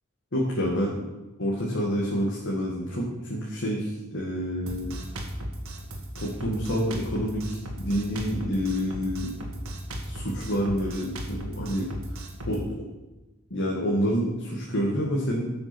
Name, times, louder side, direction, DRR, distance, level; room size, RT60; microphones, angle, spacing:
voice 1, 0.3-1.0 1.4-5.0 6.2-9.4 10.0-11.9 12.5-12.8 13.5-15.5, equal, 60° left, -3 dB, 2.1 m, -28 dB
Drum kit, 4.7-12.6, equal, 75° right, 2.0 m, -36 dB
14.5 x 6.6 x 6.1 m, 1.1 s
head